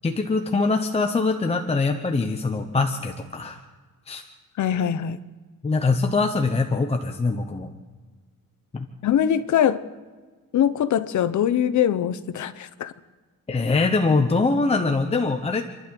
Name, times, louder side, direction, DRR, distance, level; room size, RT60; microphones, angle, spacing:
voice 1, 0.0-3.6 4.1-4.2 5.6-7.7 8.7-8.9 13.5-15.6, left 3 dB, 15° left, 4 dB, 0.9 m, -23 dB
voice 2, 4.6-5.2 9.0-9.8 10.5-12.9, left 9 dB, 55° left, 13 dB, 1.0 m, -22 dB
28.5 x 11.5 x 7.7 m, 1.4 s
cardioid pair, 170°, 35 cm